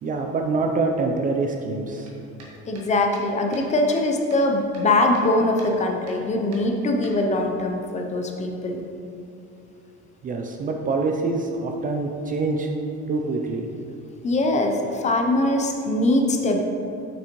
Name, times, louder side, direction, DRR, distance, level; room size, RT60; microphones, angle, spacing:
voice 1, 0.0-2.1 10.2-12.7 13.1-13.7, right 3 dB, 30° right, 2 dB, 0.4 m, -25 dB
sound 1, 2.0-4.1 4.3-5.3 5.6-5.7 6.1-6.2 6.5-7.6, right 2 dB, 60° right, 1.6 m, -47 dB
voice 2, 2.7-8.8 14.2-16.6, left 2 dB, 25° left, 2 dB, 0.6 m, -22 dB
7.9 x 6.1 x 3.0 m, 2.7 s
cardioid pair, 160°, 29 cm